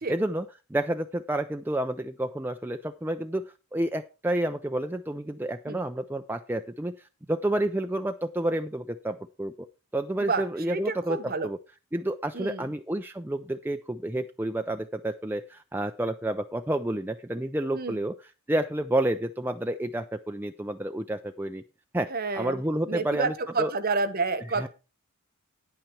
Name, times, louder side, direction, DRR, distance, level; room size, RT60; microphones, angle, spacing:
voice 1, 0.1-0.5 0.7-3.4 3.7-9.7 9.9-11.6 11.9-18.1 18.5-21.6 21.9-23.7 24.5-24.7, right 1 dB, 10° right, 6 dB, 0.4 m, -30 dB
voice 2, 10.2-11.5 12.3-12.7 17.7-18.0 22.1-22.6 22.9-24.7, right 3 dB, 45° right, 13 dB, 1.1 m, -29 dB
10.0 x 8.9 x 4.6 m, 0.30 s
head